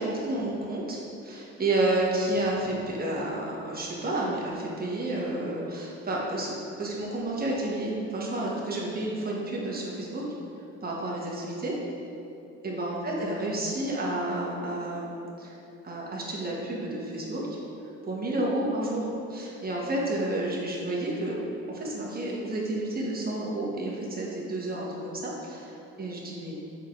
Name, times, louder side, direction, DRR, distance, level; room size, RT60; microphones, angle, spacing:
voice 1, 0.0-6.5 6.8-10.2 10.8-11.7 12.6-15.6 15.8-17.4 18.0-19.0 19.3-21.4 21.7-26.5, right 1 dB, 30° right, -4 dB, 1.5 m, -30 dB
6.7 x 4.6 x 3.9 m, 2.8 s
cardioid pair, 90°, 30 cm